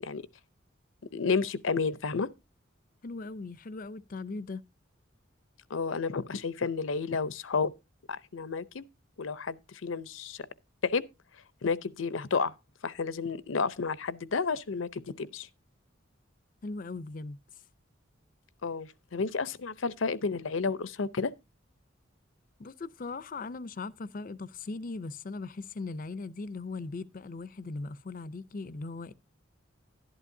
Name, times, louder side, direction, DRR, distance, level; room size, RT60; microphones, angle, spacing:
voice 1, 1.1-2.3 5.7-7.7 8.3-8.9 9.2-10.4 10.8-11.0 11.6-12.5 12.8-15.5 18.6-21.3, left 4 dB, 85° left, 0.7 m, -31 dB
voice 2, 3.0-4.6 16.6-17.4 22.6-29.1, left 3 dB, 45° left, 0.5 m, -39 dB
11.5 x 11.0 x 2.7 m
head